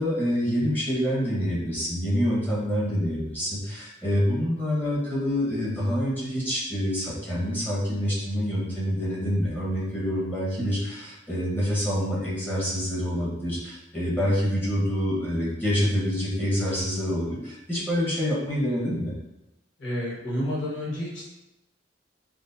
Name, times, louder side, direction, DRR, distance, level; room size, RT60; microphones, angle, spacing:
voice 1, 0.0-19.1, equal, 10° left, -6 dB, 1.0 m, -26 dB
voice 2, 19.8-21.2, equal, 85° left, -6 dB, 1.1 m, -30 dB
5.9 x 2.1 x 2.7 m, 0.91 s
head